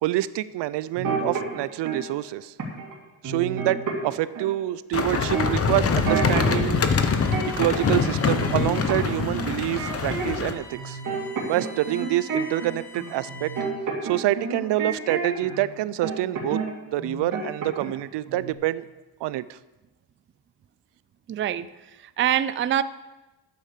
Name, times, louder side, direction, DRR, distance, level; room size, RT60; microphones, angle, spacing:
voice 1, 0.0-2.5 3.2-6.9 7.6-11.0 11.4-13.5 14.0-16.6 16.9-18.9 19.2-19.6, right 15 dB, 80° right, 17 dB, 0.6 m, -26 dB
sound 1, 1.0-2.0 2.6-2.9 3.2-4.5 5.1-6.7 7.0-10.5 10.8-15.6 16.0-16.7 17.0-18.0 18.3-18.5, right 5 dB, 50° right, 2.9 m, -30 dB
sound 2, 4.9-10.5, left 5 dB, 35° left, 1.0 m, -24 dB
Bowed string instrument, 6.6-13.9, left 3 dB, 5° left, 3.2 m, -45 dB
voice 2, 21.3-22.8, right 10 dB, 30° right, 15 dB, 0.4 m, -25 dB
10.5 x 8.5 x 6.8 m, 1.1 s
cardioid pair, 120°, 42 cm